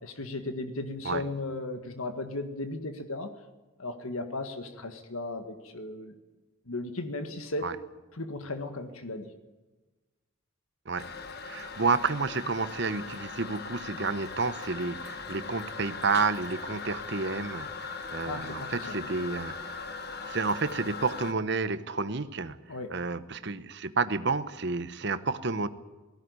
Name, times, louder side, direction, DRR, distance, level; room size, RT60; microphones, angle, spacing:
voice 1, 0.0-3.3 3.8-6.1 6.7-7.8 8.1-9.3 18.2-19.0 22.7-23.0, left 2 dB, 85° left, 7 dB, 1.8 m, -36 dB
Toilet flush, 11.0-21.3, left 4 dB, 50° left, 1.4 m, -40 dB
voice 2, 11.4-19.5 20.3-22.6 22.9-25.7, right 4 dB, 55° right, 12 dB, 1.0 m, -30 dB
18.5 x 16.0 x 9.7 m, 1.2 s
head